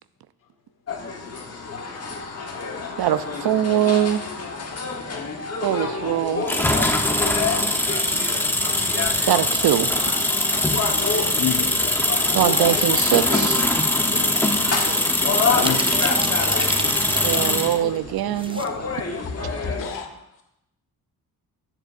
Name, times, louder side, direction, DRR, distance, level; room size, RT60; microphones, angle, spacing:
sound 1, 0.9-19.9, left 4 dB, 40° left, 1.2 m, -29 dB
voice 1, 3.0-4.2 5.6-6.5 9.3-9.9 12.3-13.6 17.2-18.6, right 12 dB, 75° right, 13 dB, 0.6 m, -22 dB
sound 2, 6.5-17.8, left 1 dB, 5° left, 0.8 m, -22 dB
sound 3, 10.6-11.2 12.0-12.3 13.5-14.2 14.6-14.7 15.3-17.6 17.9-18.7 19.0-19.1, right 3 dB, 15° right, 0.5 m, -32 dB
voice 2, 11.4-11.8 15.5-16.5 19.8-20.1, left 8 dB, 60° left, 5 dB, 1.5 m, -30 dB
voice 3, 19.2-20.1, left 6 dB, 75° left, 1 dB, 2.4 m, -40 dB
15.0 x 7.8 x 2.5 m, 0.83 s
cardioid pair, 110°, 38 cm